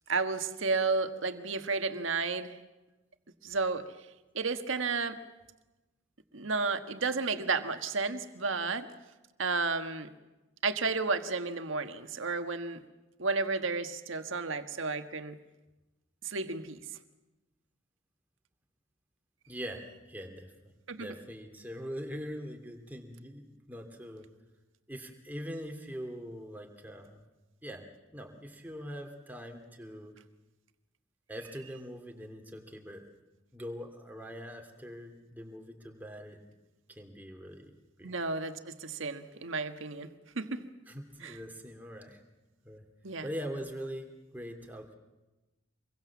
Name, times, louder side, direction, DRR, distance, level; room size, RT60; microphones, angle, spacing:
voice 1, 0.1-2.6 3.4-3.9 4.3-5.2 6.3-8.9 9.4-10.1 10.6-12.8 13.2-15.4 16.2-16.8 20.9-21.1 38.0-40.1 40.3-40.7 41.2-41.4 43.0-43.3, right 4 dB, 75° right, 8 dB, 1.5 m, -32 dB
voice 2, 19.5-20.5 21.0-24.2 24.9-27.2 27.6-27.8 28.1-30.1 31.3-33.1 33.5-36.4 36.9-38.1 40.9-42.2 42.6-42.8 43.2-45.0, equal, 10° right, 3 dB, 2.7 m, -42 dB
26.0 x 22.5 x 7.3 m, 1.1 s
head